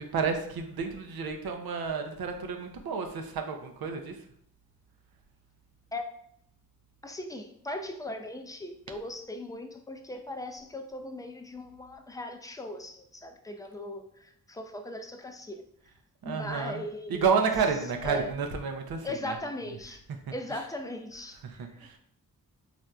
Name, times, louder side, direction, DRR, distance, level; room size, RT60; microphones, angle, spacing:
voice 1, 0.0-4.1 16.2-16.8 17.1-19.0 19.3-19.4 21.6-21.9, right 5 dB, 90° right, 4 dB, 0.5 m, -30 dB
voice 2, 7.0-15.6 16.2-18.3 19.0-20.0 20.3-22.0, left 1 dB, 10° left, 5 dB, 0.3 m, -39 dB
4.3 x 2.5 x 2.3 m, 0.69 s
wide cardioid pair, 85°, 35 cm